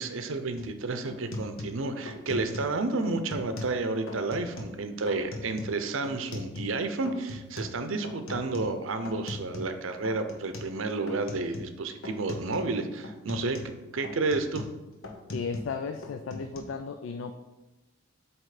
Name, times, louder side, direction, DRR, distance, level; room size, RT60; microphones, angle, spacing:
voice 1, 0.0-14.7, right 3 dB, 75° right, 8 dB, 0.6 m, -31 dB
sound 1, 0.6-0.8 1.1-2.8 3.0-3.8 4.1-4.8 5.1-6.8 7.1-9.8 10.0-10.8 11.1-11.8 12.0-12.7 13.0-15.8 16.0-16.6, left 2 dB, 90° left, 1.0 m, -40 dB
voice 2, 15.3-17.3, left 5 dB, 70° left, 7 dB, 0.4 m, -35 dB
7.6 x 3.1 x 4.9 m, 1.1 s
head